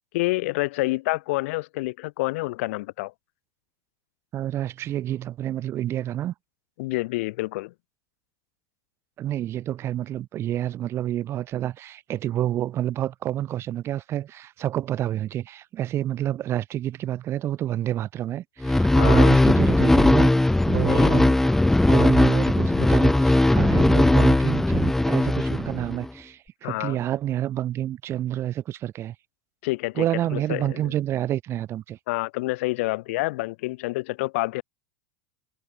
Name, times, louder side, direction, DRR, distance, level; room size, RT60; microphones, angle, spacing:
voice 1, 0.1-3.1 6.8-7.7 18.9-19.3 20.9-21.2 26.6-27.0 29.6-30.0 30.3-30.9 32.1-34.6, left 21 dB, 70° left, 1.6 m, -28 dB
voice 2, 4.3-6.3 9.2-29.2 29.9-32.0, right 12 dB, 35° right, 0.6 m, -28 dB
sound 1, 18.6-26.1, left 1 dB, 5° left, 0.4 m, -19 dB
supercardioid pair, 115°, 8 cm